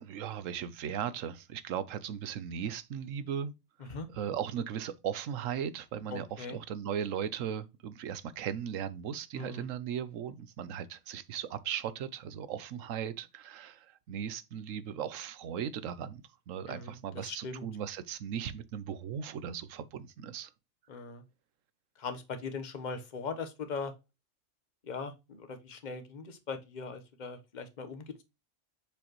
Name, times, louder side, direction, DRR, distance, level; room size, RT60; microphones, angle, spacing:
voice 1, 0.0-3.5 3.8-20.5, right 8 dB, 85° right, 1.1 m, -37 dB
voice 2, 6.1-6.6 9.3-9.7 16.7-17.7 20.9-21.2 22.0-23.9 24.8-28.2, left 4 dB, 40° left, 1.1 m, -40 dB
7.0 x 5.1 x 3.0 m
omnidirectional pair, 1.3 m